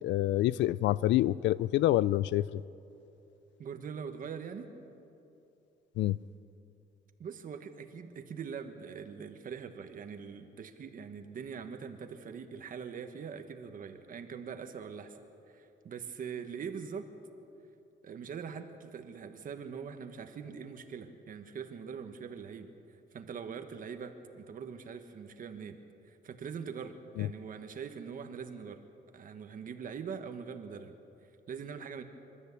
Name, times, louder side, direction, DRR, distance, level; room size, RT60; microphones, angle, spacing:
voice 1, 0.0-2.6 6.0-6.2 27.2-27.3, left 14 dB, 80° left, 20 dB, 0.4 m, -27 dB
voice 2, 3.6-4.7 7.2-15.2 15.5-17.1 18.0-22.7 23.1-25.8 26.0-28.8 29.1-30.9 31.5-32.0, right 6 dB, 50° right, 7 dB, 1.4 m, -42 dB
26.5 x 13.5 x 8.4 m, 2.8 s
cardioid pair, 150°, 18 cm